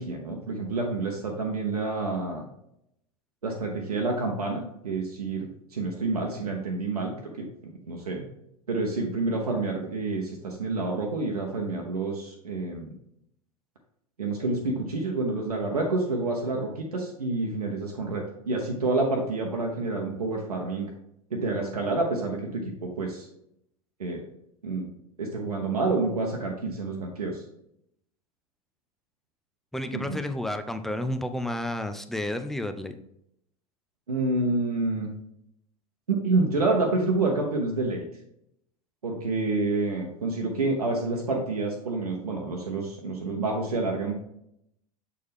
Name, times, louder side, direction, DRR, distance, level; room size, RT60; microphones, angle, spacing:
voice 1, 0.0-2.4 3.4-7.5 7.9-8.3 8.7-12.9 14.2-20.9 21.3-23.3 24.0-24.2 24.6-24.9 25.2-27.4 29.9-30.2 34.1-35.1 36.1-38.0 39.0-44.1, right 3 dB, 80° right, 1 dB, 1.0 m, -28 dB
voice 2, 29.7-32.9, left 1 dB, ahead, 8 dB, 0.5 m, -31 dB
7.2 x 4.6 x 3.5 m, 0.76 s
figure-of-eight pair, 85°, 19 cm